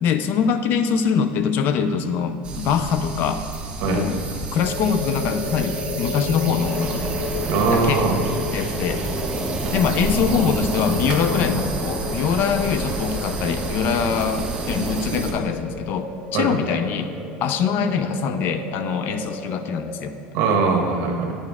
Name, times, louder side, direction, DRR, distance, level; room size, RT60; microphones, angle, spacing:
voice 1, 0.0-3.5 3.9-7.0 7.7-8.0 8.5-9.0 9.7-17.1 17.4-20.1, left 6 dB, 50° left, 10 dB, 0.4 m, -23 dB
sound 1, 2.4-15.3, right 4 dB, 25° right, 1.2 m, -31 dB
sound 2, 4.5-20.1, left 3 dB, 35° left, 0.8 m, -33 dB
sound 3, 6.6-15.1, right 2 dB, 5° right, 0.5 m, -30 dB
voice 2, 7.5-8.2 16.3-16.6 20.3-21.3, right 4 dB, 55° right, 2 dB, 1.2 m, -21 dB
8.8 x 6.9 x 3.5 m, 2.2 s
cardioid pair, 140°, 4 cm